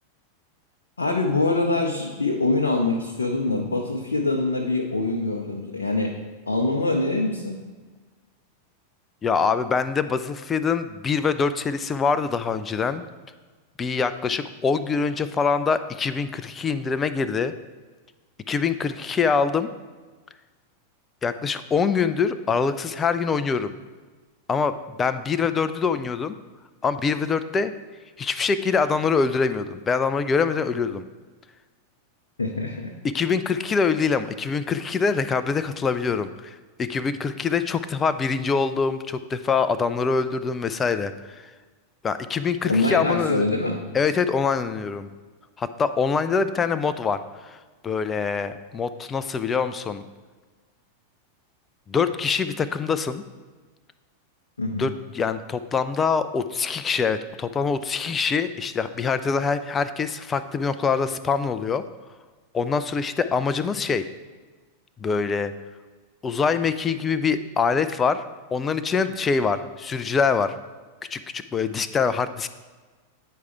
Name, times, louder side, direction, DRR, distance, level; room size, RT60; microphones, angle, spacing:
voice 1, 1.0-6.2 6.5-7.6 32.4-32.9 42.6-43.8 54.6-54.9, left 2 dB, 75° left, 0 dB, 0.6 m, -24 dB
voice 2, 9.2-13.1 13.8-17.5 18.5-19.7 21.2-23.7 24.5-26.4 26.8-27.7 28.2-31.0 33.0-41.4 42.0-43.4 43.9-45.1 45.6-50.0 51.9-53.2 54.8-61.8 62.5-64.1 65.0-65.5 66.2-68.2 68.5-70.5 71.1-72.5, left 5 dB, 20° left, 13 dB, 0.4 m, -24 dB
9.3 x 4.8 x 3.4 m, 1.3 s
figure-of-eight pair, 90°, 0 cm